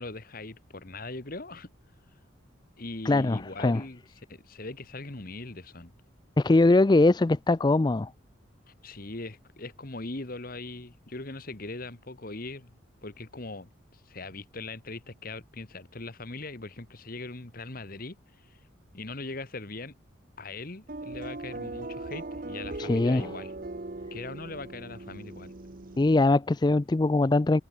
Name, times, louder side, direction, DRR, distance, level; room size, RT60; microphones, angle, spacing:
voice 1, 0.0-1.7 2.8-4.0 4.3-5.9 8.8-12.8 13.0-18.2 18.4-18.6 18.9-20.0 20.4-23.5 24.1-25.5, left 2 dB, 45° left, 1.6 m, -40 dB
voice 2, 3.0-3.8 6.4-8.1 22.8-23.3 26.0-27.6, left 2 dB, 20° left, 0.4 m, -22 dB
sound 1, 20.9-26.2, right 2 dB, 45° right, 1.0 m, -39 dB
head